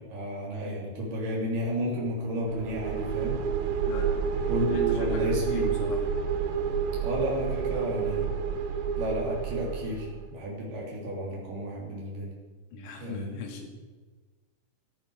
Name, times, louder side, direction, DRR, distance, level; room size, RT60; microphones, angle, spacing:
voice 1, 0.1-3.4 4.5-5.7 7.0-8.3 8.9-12.3 13.0-13.3, right 1 dB, 55° right, -3 dB, 5.1 m, -32 dB
sound 1, 2.5-10.2, right 6 dB, 70° right, 2.8 m, -29 dB
voice 2, 4.7-6.0 12.7-13.9, left 5 dB, 55° left, 2 dB, 3.3 m, -39 dB
14.5 x 13.5 x 5.0 m, 1.3 s
omnidirectional pair, 4.7 m